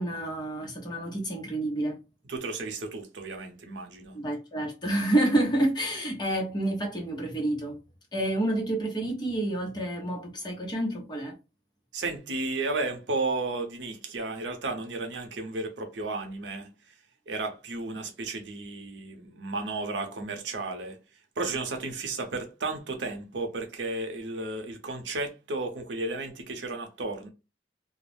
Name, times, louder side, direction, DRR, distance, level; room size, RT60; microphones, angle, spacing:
voice 1, 0.0-1.9 4.1-7.8 8.1-11.3, right 1 dB, 25° left, 0.8 m, -28 dB
voice 2, 2.3-4.2 11.9-16.7 17.3-21.0 21.4-27.3, right 3 dB, 85° right, 0.6 m, -33 dB
2.3 x 2.0 x 3.2 m
head